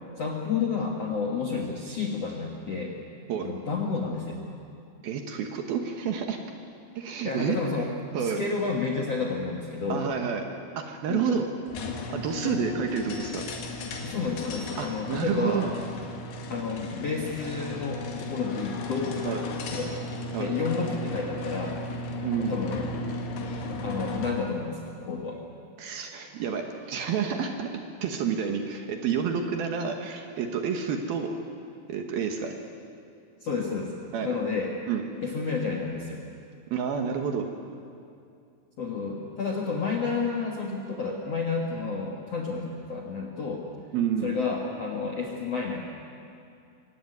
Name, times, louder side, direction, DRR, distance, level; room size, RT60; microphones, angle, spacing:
voice 1, 0.2-2.9 3.4-4.4 7.2-10.0 11.1-11.5 12.4-12.7 14.0-15.7 16.5-19.9 20.3-21.8 22.4-22.9 23.8-25.4 33.4-34.7 35.2-36.2 38.8-43.6 44.2-45.8, left 4 dB, 85° left, -1 dB, 1.4 m, -30 dB
voice 2, 5.0-6.4 7.0-7.6 8.1-8.4 9.9-10.4 10.8-11.4 12.1-13.5 14.8-15.7 19.2-19.4 20.3-20.5 22.2-22.6 25.8-27.7 28.0-31.3 31.9-32.6 34.1-34.4 34.9-35.0 36.7-37.5 43.9-44.3, right 7 dB, 70° right, 4 dB, 2.5 m, -29 dB
sound 1, 11.7-24.5, left 2 dB, 60° left, 3.8 m, -35 dB
23.5 x 17.5 x 9.4 m, 2.5 s
omnidirectional pair, 5.7 m